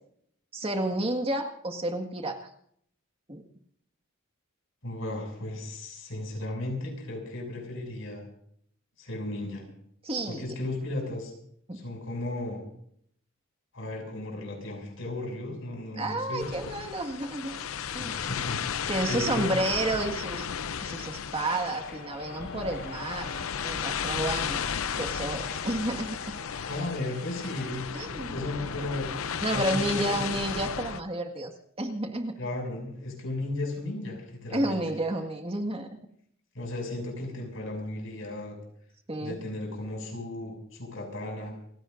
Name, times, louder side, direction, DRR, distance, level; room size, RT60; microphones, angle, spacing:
voice 1, 0.5-2.5 3.3-3.4 10.0-10.4 11.7-11.8 16.0-17.6 17.9-18.5 18.9-20.5 20.8-24.6 25.0-26.2 27.9-28.4 29.4-31.5 31.8-32.4 34.5-36.0 39.1-39.4, right 1 dB, 30° right, 3 dB, 1.8 m, -31 dB
voice 2, 4.8-8.2 9.0-9.6 10.3-11.3 11.7-12.6 13.7-16.5 18.0-19.7 26.7-27.9 28.3-29.1 29.5-30.3 32.4-34.8 36.6-38.5 39.2-41.5, left 2 dB, 65° left, 1 dB, 6.9 m, -35 dB
sound 1, 16.4-31.0, left 7 dB, 85° left, 0.6 m, -34 dB
sound 2, 21.4-27.7, left 3 dB, 50° left, 7.3 m, -44 dB
29.0 x 16.5 x 2.6 m, 0.67 s
head